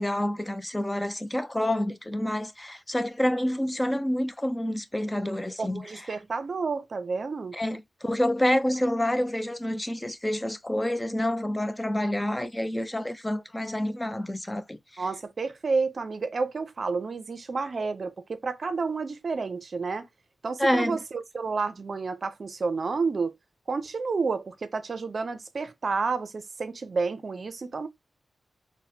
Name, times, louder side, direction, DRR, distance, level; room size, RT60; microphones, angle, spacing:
voice 1, 0.0-5.9 7.5-15.0 20.6-21.0, left 1 dB, 15° left, 0.5 m, -28 dB
voice 2, 5.6-7.6 15.0-20.1 20.4-23.3 23.7-27.9, right 4 dB, 60° right, 0.5 m, -30 dB
3.9 x 2.1 x 2.6 m
cardioid pair, 70°, 0 cm